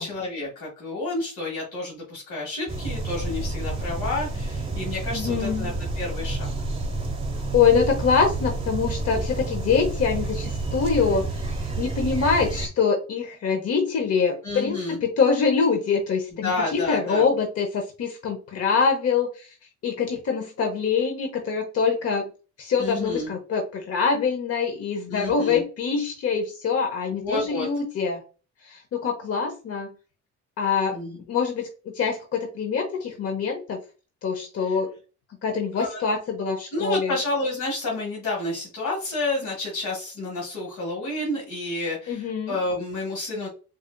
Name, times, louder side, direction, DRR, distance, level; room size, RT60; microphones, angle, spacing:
voice 1, 0.0-6.5 14.4-15.0 16.4-17.2 22.8-23.3 25.1-25.6 27.2-27.7 30.9-31.2 34.6-34.8 35.7-36.0 36.7-43.5, left 2 dB, 75° left, -4 dB, 1.7 m, -30 dB
sound 1, 2.7-12.7, right 2 dB, 20° right, 1.1 m, -29 dB
voice 2, 5.1-5.7 7.5-11.3 11.8-19.5 19.8-22.2 22.6-28.2 28.6-29.9 30.6-31.0 31.3-33.8 34.2-34.9 35.4-37.1 42.1-42.6, left 5 dB, 50° left, 3 dB, 0.8 m, -24 dB
4.2 x 2.3 x 2.2 m, 0.34 s
cardioid pair, 90°, 30 cm